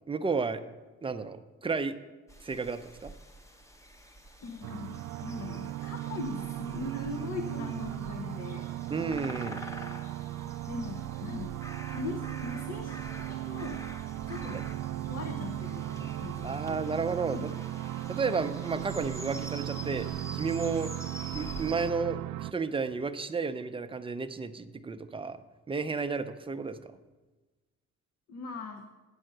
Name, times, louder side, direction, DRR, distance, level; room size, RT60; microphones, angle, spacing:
voice 1, 0.1-0.6 1.0-1.9 2.4-3.1 8.9-9.6 16.4-17.4 18.1-20.9 21.3-26.9, right 4 dB, 20° right, 9 dB, 0.5 m, -32 dB
sound 1, 2.3-21.9, equal, 10° left, 0.9 m, -47 dB
voice 2, 4.4-8.8 10.7-11.6 11.9-13.0 13.3-13.8 14.3-14.7 15.1-16.8 17.3-17.7 28.3-28.9, left 4 dB, 60° left, 5 dB, 0.9 m, -40 dB
sound 2, 4.6-22.5, right 14 dB, 75° right, 0.4 m, -37 dB
8.7 x 5.6 x 7.8 m, 1.2 s
cardioid pair, 90°, 30 cm